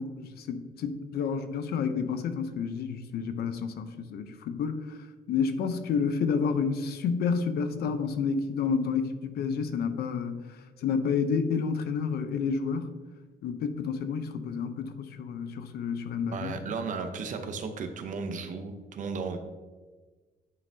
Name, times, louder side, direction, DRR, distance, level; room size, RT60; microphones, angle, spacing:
voice 1, 0.0-12.9 13.4-16.5, left 6 dB, 75° left, 9 dB, 0.7 m, -30 dB
voice 2, 16.3-19.4, right 4 dB, 50° right, 7 dB, 0.8 m, -34 dB
9.6 x 5.5 x 2.7 m, 1.3 s
cardioid pair, 155°, 16 cm